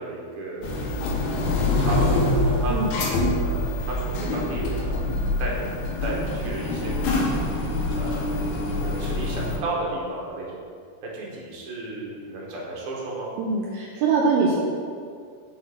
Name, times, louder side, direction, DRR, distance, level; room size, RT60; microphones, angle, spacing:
voice 1, 0.0-1.4 1.8-2.7 3.4-5.0 5.4-5.6 6.0-7.2 7.9-8.4 8.7-10.6 11.0-13.3, right 2 dB, 60° right, -4 dB, 1.8 m, -33 dB
sound 1, 0.6-9.6, left 2 dB, 80° left, 2.0 m, -25 dB
voice 2, 13.4-14.6, right 4 dB, 80° right, -3 dB, 1.8 m, -22 dB
6.2 x 4.3 x 3.6 m, 2.2 s
omnidirectional pair, 3.4 m